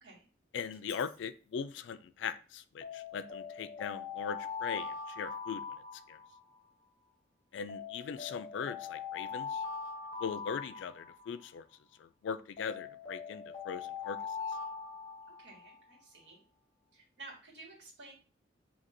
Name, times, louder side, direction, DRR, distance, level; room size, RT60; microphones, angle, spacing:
voice 1, 0.5-5.6 6.1-6.2 7.5-9.6 10.2-11.7 12.0-14.2, left 6 dB, 75° left, 13 dB, 0.3 m, -40 dB
Alarm, 0.7-1.1 2.8-6.6 7.7-11.4 12.6-15.8, left 6 dB, 20° left, 1.1 m, -42 dB
voice 2, 15.4-16.4 16.9-18.1, right 3 dB, 70° right, -3 dB, 1.8 m, -52 dB
5.7 x 2.8 x 2.6 m, 0.38 s
head